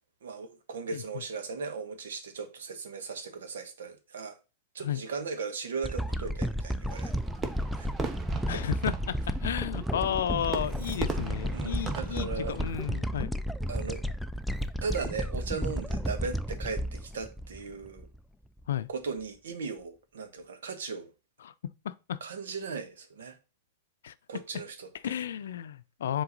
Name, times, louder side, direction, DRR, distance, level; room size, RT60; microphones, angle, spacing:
voice 1, 0.2-4.4 4.7-7.2 7.7-7.9 8.5-8.6 11.5-12.6 13.7-14.0 14.8-18.1 18.9-21.1 22.2-23.4 24.3-25.1, right 5 dB, 80° right, 1.2 m, -37 dB
sound 1, 5.8-18.2 18.6-18.7, equal, ahead, 0.4 m, -33 dB
Fireworks, 6.9-13.0, right 6 dB, 25° right, 1.0 m, -40 dB
voice 2, 8.5-13.3 18.7-18.9 21.4-21.5 21.8-22.2 24.0-24.1 25.0-26.2, left 10 dB, 75° left, 0.5 m, -32 dB
sound 2, 10.2-12.2 12.6-12.8 14.4-14.7, right 4 dB, 60° right, 2.0 m, -59 dB
7.0 x 3.9 x 4.0 m
hypercardioid pair, 110°, 0 cm